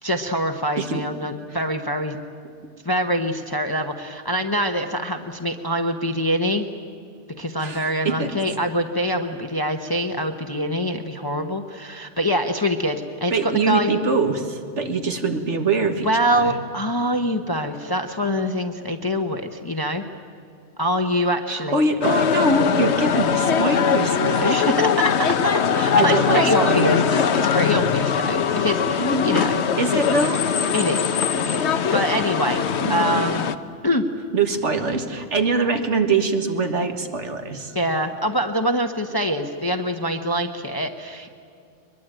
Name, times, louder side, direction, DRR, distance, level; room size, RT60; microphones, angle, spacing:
voice 1, 0.0-2.2 2.8-6.7 7.4-13.9 16.0-20.0 20.8-21.8 24.4-29.6 30.7-31.0 31.4-33.5 33.8-34.0 37.7-41.4, equal, 20° left, 4 dB, 1.0 m, -24 dB
voice 2, 7.6-8.3 13.3-16.1 16.3-16.5 21.5-24.7 25.7-27.1 29.0-29.5 29.8-30.5 32.8-33.2 34.3-37.8, right 3 dB, 80° right, 7 dB, 2.0 m, -23 dB
sound 1, 22.0-33.5, left 7 dB, 70° left, 1.1 m, -21 dB
22.5 x 22.0 x 9.0 m, 2.4 s
omnidirectional pair, 1.2 m